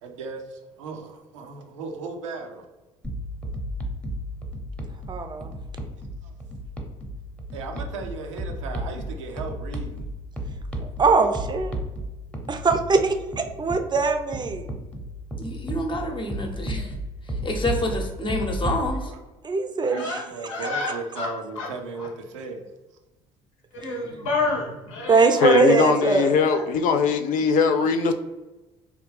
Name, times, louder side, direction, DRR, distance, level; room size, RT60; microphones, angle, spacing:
voice 1, 0.0-2.6 6.2-6.3 7.5-10.1 18.9-19.2 19.8-22.6, right 4 dB, 90° right, 0.5 m, -36 dB
sound 1, 3.0-18.9, equal, 5° left, 0.8 m, -33 dB
voice 2, 5.1-5.5 11.0-11.7 12.5-14.7 19.4-20.2 25.1-26.3, right 4 dB, 30° right, 0.5 m, -21 dB
voice 3, 15.4-16.9 17.4-19.1, left 1 dB, 35° left, 0.9 m, -28 dB
voice 4, 19.9-21.3 21.6-21.7 22.0-22.1 23.7-25.5 26.5-26.6, left 3 dB, 85° left, 0.9 m, -29 dB
voice 5, 25.4-28.1, left 6 dB, 60° left, 0.4 m, -20 dB
3.3 x 2.3 x 3.3 m
hypercardioid pair, 60°, 15 cm